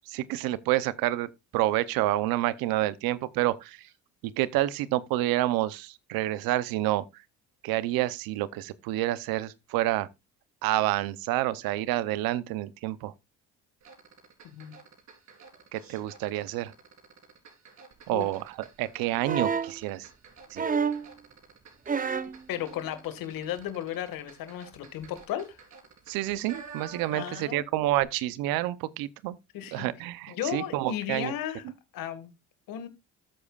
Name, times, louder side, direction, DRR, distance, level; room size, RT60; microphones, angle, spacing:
voice 1, 0.1-3.8 4.2-7.0 7.6-10.1 10.6-13.1 15.7-16.7 18.1-18.4 18.8-20.1 20.5-20.7 26.1-29.4 29.7-31.3, right 15 dB, 85° right, 0.8 m, -28 dB
sound 1, 13.8-27.6 27.9-28.0, right 5 dB, 55° right, 4.0 m, -50 dB
sound 2, 19.2-19.8 20.6-21.1 21.9-22.4 23.6-23.7, right 6 dB, 25° right, 0.8 m, -28 dB
voice 2, 22.5-25.6 27.1-27.6 29.5-29.9 30.3-31.6 31.9-32.3 32.7-32.9, left 11 dB, 75° left, 2.0 m, -34 dB
13.5 x 8.5 x 2.4 m
supercardioid pair, 75°, 34 cm